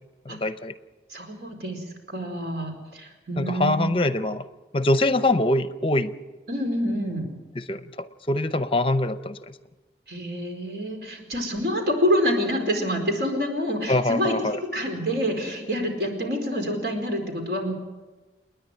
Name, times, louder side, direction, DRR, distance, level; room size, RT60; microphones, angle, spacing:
voice 1, 0.3-0.7 3.4-4.4 4.7-6.1 7.6-7.8 8.3-9.4 13.9-14.6, left 2 dB, 30° left, 11 dB, 0.7 m, -23 dB
voice 2, 1.1-3.9 6.5-7.3 10.1-17.7, equal, 65° right, 4 dB, 4.7 m, -27 dB
29.0 x 10.5 x 9.5 m, 1.2 s
head